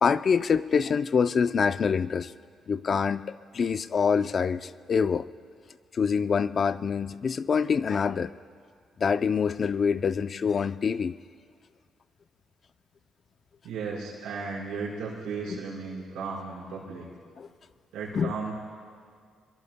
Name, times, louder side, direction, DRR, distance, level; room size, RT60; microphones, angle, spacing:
voice 1, 0.0-2.3 2.7-5.3 5.9-8.3 9.0-11.1 15.5-15.6 17.4-17.5 18.1-18.3, left 6 dB, 45° left, 13 dB, 0.5 m, -25 dB
voice 2, 13.6-17.1 17.9-18.5, right 4 dB, 85° right, -4 dB, 4.8 m, -35 dB
25.5 x 23.0 x 2.2 m, 2.1 s
cardioid pair, 90°, 0 cm